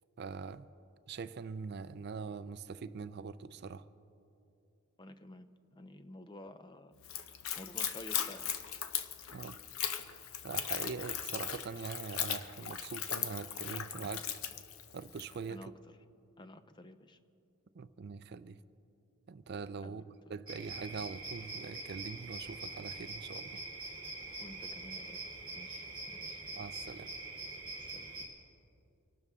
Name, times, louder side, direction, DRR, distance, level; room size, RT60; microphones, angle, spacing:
voice 1, 0.2-0.7 1.1-3.8 9.3-9.6 10.4-14.3 14.9-15.7 17.8-18.6 19.3-23.6 26.6-27.1, right 5 dB, 50° right, 0.4 m, -43 dB
voice 2, 5.0-6.9 7.5-8.5 15.5-16.0 16.4-17.2 19.8-20.0 24.4-25.2 25.5-26.6 27.8-28.1, left 1 dB, 20° left, 0.5 m, -51 dB
Splash splatter / Trickle dribble, 7.0-15.4, left 9 dB, 80° left, 0.7 m, -38 dB
sound 1, 20.5-28.3, right 2 dB, 20° right, 3.2 m, -44 dB
25.0 x 12.5 x 3.6 m
head